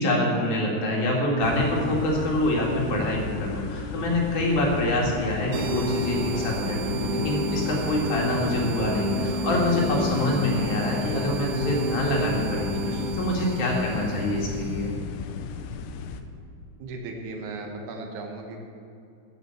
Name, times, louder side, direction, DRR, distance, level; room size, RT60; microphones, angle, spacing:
voice 1, 0.0-14.9, left 1 dB, 55° left, -2 dB, 2.7 m, -26 dB
sound 1, 1.4-16.2, left 6 dB, 85° left, 3.0 m, -35 dB
sound 2, 5.5-14.9, equal, 90° right, 3.6 m, -30 dB
voice 2, 16.8-18.6, right 3 dB, 75° right, 2 dB, 1.8 m, -36 dB
14.5 x 5.7 x 7.5 m, 2.5 s
omnidirectional pair, 5.2 m